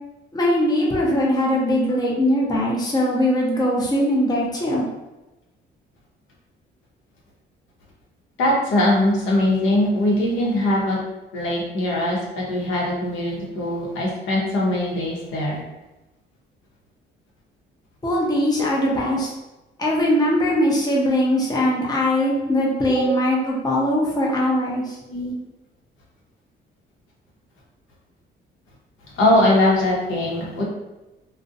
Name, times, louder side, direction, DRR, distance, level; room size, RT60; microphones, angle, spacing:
voice 1, 0.3-4.8 18.0-19.3 19.8-25.0, left 1 dB, 20° left, -3 dB, 0.6 m, -21 dB
voice 2, 8.4-11.0 11.3-15.6 22.5-23.1 25.1-25.3 29.1-30.6, left 1 dB, 80° left, -3 dB, 0.8 m, -21 dB
2.4 x 2.0 x 2.6 m, 1.0 s
cardioid pair, 90°, 20 cm